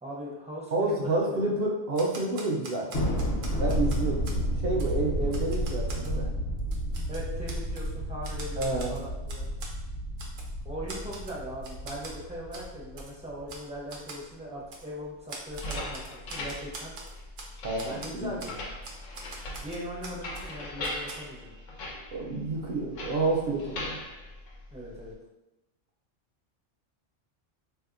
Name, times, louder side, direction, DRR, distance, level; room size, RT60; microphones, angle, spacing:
voice 1, 0.0-1.5 7.1-8.6 8.9-9.5 10.6-16.9 17.8-18.5 19.6-21.5 24.7-25.1, equal, 10° right, -5 dB, 0.4 m, -39 dB
voice 2, 0.7-2.9 3.6-4.3 4.6-6.3 8.6-9.0 17.6-18.3 22.1-24.0, right 2 dB, 60° right, -1 dB, 0.7 m, -29 dB
Typewriter, 1.9-4.4 4.8-4.9 5.3-6.2 6.6-7.9 8.2-9.7 10.2-10.5 10.9-11.4 11.6-12.2 12.5-12.7 13.0-13.1 13.5-13.6 13.9-14.2 14.7-14.9 15.3-17.5 17.8-18.1 18.4-18.6 18.8-20.5 20.8-21.1, right 3 dB, 85° right, 1.0 m, -43 dB
Thunder, 2.9-13.6, equal, 60° left, 0.9 m, -31 dB
sound 1, 15.5-25.1, left 1 dB, 90° left, 1.0 m, -40 dB
3.5 x 2.7 x 2.4 m, 0.98 s
omnidirectional pair, 1.3 m